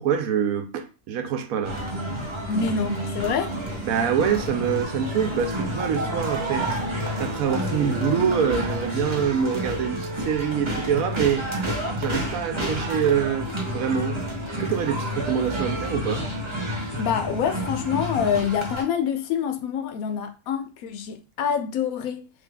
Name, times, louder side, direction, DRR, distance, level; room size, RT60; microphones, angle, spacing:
voice 1, 0.0-1.8 3.8-6.7 7.2-11.5 12.0-14.2 14.6-16.3, right 8 dB, 75° right, 1.0 m, -25 dB
sound 1, 1.6-18.8, equal, 25° right, 0.9 m, -29 dB
voice 2, 2.5-3.5 17.0-22.3, left 7 dB, 75° left, 1.0 m, -26 dB
3.3 x 2.8 x 3.8 m
omnidirectional pair, 1.5 m